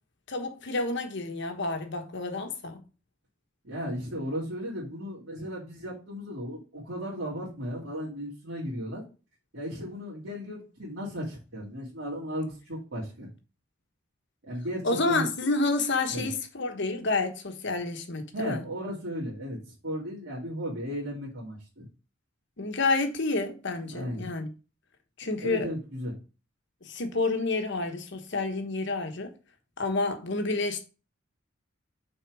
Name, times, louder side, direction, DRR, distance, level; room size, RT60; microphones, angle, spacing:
voice 1, 0.3-2.8 14.8-18.6 22.6-24.5 25.2-25.7 26.8-29.3 29.8-30.9, left 3 dB, 60° left, 1.2 m, -29 dB
voice 2, 3.6-9.0 9.5-13.3 14.5-15.3 16.1-16.3 18.3-19.6 19.8-21.9 23.9-24.2 25.4-26.1, equal, 65° right, 2.4 m, -35 dB
6.2 x 4.3 x 4.7 m
head